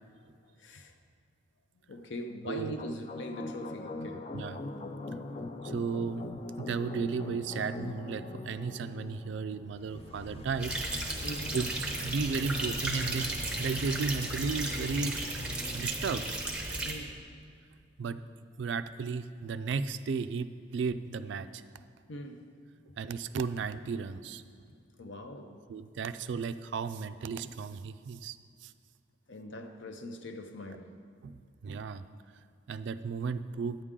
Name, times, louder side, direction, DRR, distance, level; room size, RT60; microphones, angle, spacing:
voice 1, 0.6-0.9 1.9-4.4 11.2-11.6 16.8-17.2 22.1-22.5 25.0-25.6 29.3-30.9, left 1 dB, 65° left, 6 dB, 0.7 m, -42 dB
sound 1, 2.8-16.5, left 2 dB, 30° left, 0.3 m, -42 dB
voice 2, 5.6-6.3 6.6-11.2 11.5-15.1 15.7-16.2 18.0-18.2 18.6-21.6 23.0-24.4 25.7-28.7 31.2-31.4 31.6-32.0 32.7-33.8, right 5 dB, 60° right, 12 dB, 0.3 m, -34 dB
sound 2, 10.6-16.9, right 2 dB, 5° right, 0.7 m, -35 dB
9.7 x 9.1 x 3.7 m, 2.3 s
head